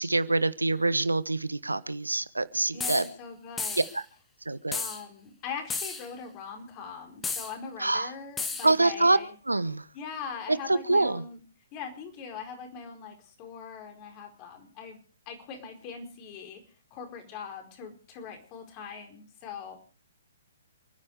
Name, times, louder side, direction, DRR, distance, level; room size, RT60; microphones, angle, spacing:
voice 1, 0.0-3.0 3.9-4.0 4.5-4.8 7.8-8.1 8.6-9.2 9.5-9.8 10.7-11.2, right 2 dB, 90° right, 16 dB, 1.1 m, -25 dB
voice 2, 2.7-3.9 4.7-9.3 9.9-11.4 11.7-15.0 15.3-16.6 16.9-19.8, left 6 dB, 30° left, 5 dB, 4.6 m, -41 dB
sound 1, 2.8-3.1 3.6-4.0 4.7-5.0 5.7-6.1 7.2-7.5 8.4-8.7, left 4 dB, 10° left, 1.8 m, -33 dB
28.5 x 10.0 x 5.0 m, 0.39 s
figure-of-eight pair, 130°, 0 cm